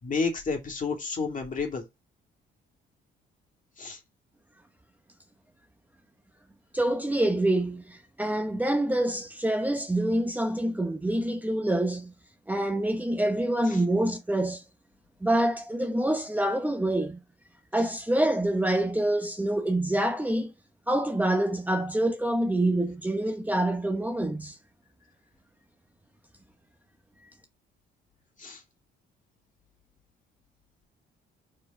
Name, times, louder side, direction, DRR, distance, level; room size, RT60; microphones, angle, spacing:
voice 1, 0.0-1.9 3.8-4.0 13.7-13.8 28.4-28.6, left 4 dB, 40° left, 2.3 m, -30 dB
voice 2, 6.7-12.1 12.5-14.6 15.2-17.2 17.7-20.5 20.9-24.6, right 1 dB, 10° right, 0.9 m, -26 dB
4.9 x 4.5 x 5.4 m
cardioid pair, 90°, 20 cm